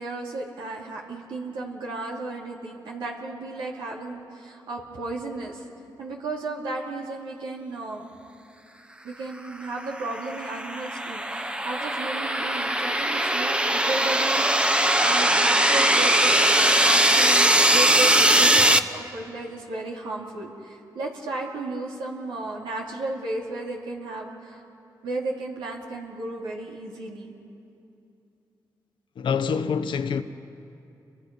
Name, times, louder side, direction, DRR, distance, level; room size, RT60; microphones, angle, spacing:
voice 1, 0.0-5.6 6.0-8.1 9.0-14.4 14.7-24.6 25.0-27.3, right 2 dB, 90° right, 3.1 m, -34 dB
sound 1, 9.8-18.8, right 1 dB, 10° right, 1.0 m, -20 dB
voice 2, 29.2-30.2, left 6 dB, 75° left, 1.1 m, -26 dB
30.0 x 23.0 x 5.5 m
supercardioid pair, 50°, 8 cm